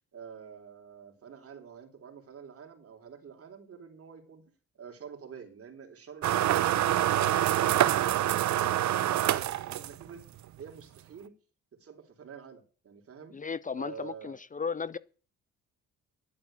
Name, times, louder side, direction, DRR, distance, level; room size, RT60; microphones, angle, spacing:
voice 1, 0.1-4.4 4.8-6.8 7.1-10.2 10.6-11.3 11.8-13.3 13.7-14.4, right 7 dB, 50° right, 3.6 m, -47 dB
sound 1, 6.2-10.2, right 12 dB, 70° right, 0.8 m, -26 dB
voice 2, 13.3-15.0, left 5 dB, 25° left, 0.6 m, -35 dB
11.0 x 8.5 x 8.8 m
cardioid pair, 90°, 30 cm